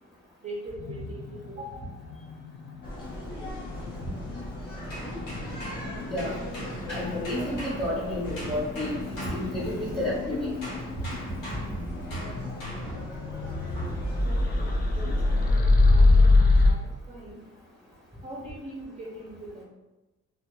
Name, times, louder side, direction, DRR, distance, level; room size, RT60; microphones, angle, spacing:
voice 1, 0.4-2.0 14.2-17.4 18.2-19.6, right 1 dB, 25° right, -3 dB, 0.5 m, -42 dB
sound 1, 0.8-7.5 7.9-16.7, left 2 dB, 30° left, 0.4 m, -26 dB
sound 2, 2.8-15.5, equal, 50° left, 1.3 m, -40 dB
sound 3, 4.8-10.1 10.6-13.1 13.8-14.0, right 1 dB, 85° left, 1.1 m, -39 dB
voice 2, 6.0-6.4 6.9-10.5, left 1 dB, ahead, -6 dB, 1.3 m, -31 dB
2.7 x 2.3 x 2.2 m, 1.1 s
cardioid pair, 90°, 30 cm